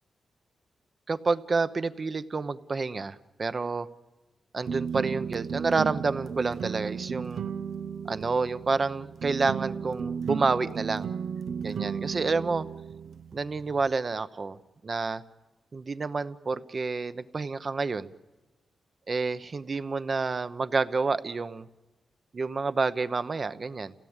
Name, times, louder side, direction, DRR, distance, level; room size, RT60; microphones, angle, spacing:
voice 1, 1.1-3.9 4.5-7.4 8.1-11.1 11.6-12.7 13.3-14.6 14.8-15.2 15.7-18.1 19.1-21.7 22.3-23.9, right 4 dB, 40° right, 12 dB, 0.9 m, -29 dB
sound 1, 4.6-13.9, right 7 dB, 85° right, 0.7 m, -35 dB
29.0 x 17.0 x 8.9 m, 1.2 s
cardioid pair, 100°, 0 cm